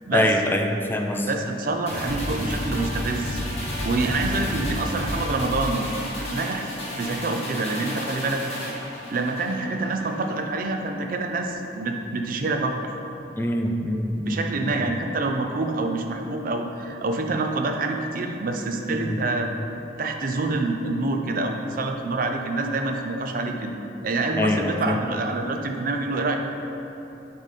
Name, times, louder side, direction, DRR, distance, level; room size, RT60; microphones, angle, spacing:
voice 1, 0.1-1.3 13.4-14.9 18.9-19.2 24.4-25.0, left 1 dB, 10° left, 3 dB, 0.3 m, -24 dB
voice 2, 1.3-3.4 3.8-5.9 6.2-8.4 9.1-12.9 14.3-19.5 20.0-23.7 24.0-26.4, right 2 dB, 50° right, 4 dB, 0.5 m, -26 dB
sound 1, 1.9-10.4 10.7-10.9, equal, 35° left, 1.3 m, -31 dB
6.1 x 3.8 x 4.2 m, 3.0 s
head